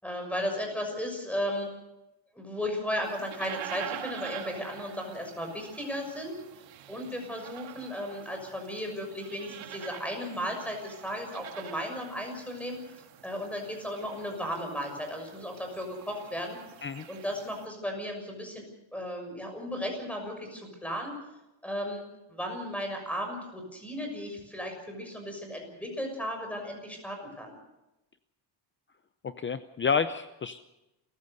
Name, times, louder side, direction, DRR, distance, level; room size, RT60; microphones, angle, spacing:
voice 1, 0.0-1.7 2.3-6.4 6.9-12.8 13.2-16.6 17.1-18.7 18.9-21.2 21.6-22.0 22.3-27.6, equal, 5° left, 3 dB, 6.5 m, -35 dB
sound 1, 3.0-17.7, right 11 dB, 90° right, 1.9 m, -46 dB
voice 2, 29.2-30.6, left 6 dB, 25° left, 11 dB, 0.7 m, -29 dB
29.0 x 15.0 x 6.6 m, 0.94 s
cardioid pair, 150°, 45 cm